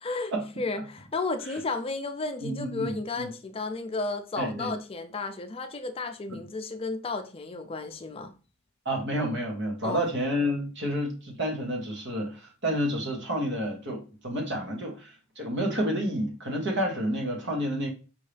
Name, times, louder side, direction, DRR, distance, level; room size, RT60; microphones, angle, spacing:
voice 1, 0.0-8.3 9.8-10.1, left 3 dB, 25° left, 0.5 m, -33 dB
voice 2, 2.4-3.3 4.4-4.7 8.8-17.9, equal, 55° right, 1.2 m, -30 dB
5.5 x 2.7 x 3.3 m
head